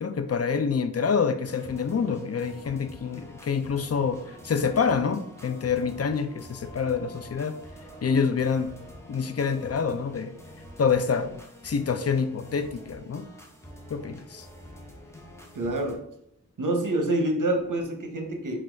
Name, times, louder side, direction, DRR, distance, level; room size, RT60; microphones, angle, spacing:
voice 1, 0.0-7.6 8.0-8.7 9.1-10.4 10.8-13.3 13.9-14.5, left 6 dB, 45° left, 10 dB, 0.5 m, -27 dB
sound 1, 1.4-16.0, equal, 10° left, 0.8 m, -46 dB
voice 2, 15.5-16.0 16.6-18.6, right 1 dB, 65° right, 4 dB, 0.9 m, -27 dB
4.3 x 2.4 x 4.3 m, 0.74 s
wide cardioid pair, 65°, 34 cm